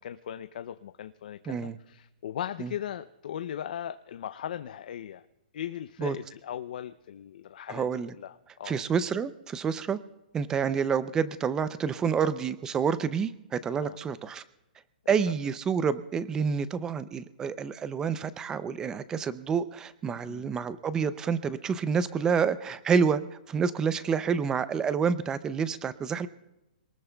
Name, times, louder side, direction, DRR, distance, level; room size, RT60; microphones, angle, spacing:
voice 1, 0.0-5.2 5.5-8.8 13.8-14.0 15.3-15.4 20.3-20.5, left 10 dB, 60° left, 10 dB, 0.5 m, -38 dB
voice 2, 1.5-1.8 2.6-2.7 6.0-6.2 7.7-8.1 8.6-10.0 10.3-14.4 15.1-23.2 23.5-26.3, right 6 dB, 10° right, 15 dB, 0.5 m, -28 dB
26.0 x 19.5 x 2.3 m, 0.94 s
hypercardioid pair, 160°, 5 cm